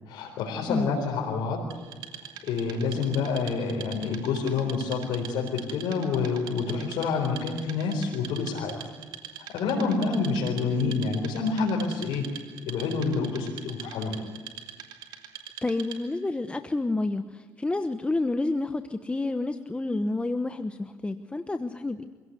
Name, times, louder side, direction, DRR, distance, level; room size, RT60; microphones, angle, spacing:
voice 1, 0.1-1.6 2.4-8.7 9.4-12.2 12.7-14.3, left 4 dB, 85° left, -3 dB, 4.4 m, -28 dB
Wood, 1.7-16.2, right 9 dB, 85° right, 2.8 m, -44 dB
voice 2, 15.6-22.0, left 2 dB, 15° left, 9 dB, 1.1 m, -29 dB
25.0 x 17.0 x 9.6 m, 1.5 s
cardioid pair, 90°, 7 cm